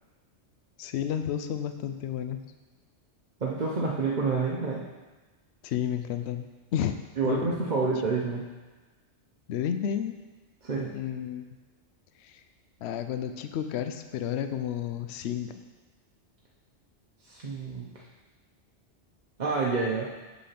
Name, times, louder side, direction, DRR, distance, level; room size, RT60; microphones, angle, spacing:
voice 1, 0.8-2.4 5.6-6.5 6.7-7.0 7.2-7.8 9.5-10.2 10.9-11.5 12.2-12.4 12.8-15.6, left 9 dB, 70° left, 8 dB, 0.8 m, -31 dB
voice 2, 3.4-4.8 7.2-8.4 10.6-10.9 17.3-17.9 19.4-20.1, right 4 dB, 45° right, -4 dB, 0.9 m, -28 dB
8.3 x 4.1 x 5.9 m, 1.2 s
omnidirectional pair, 1.2 m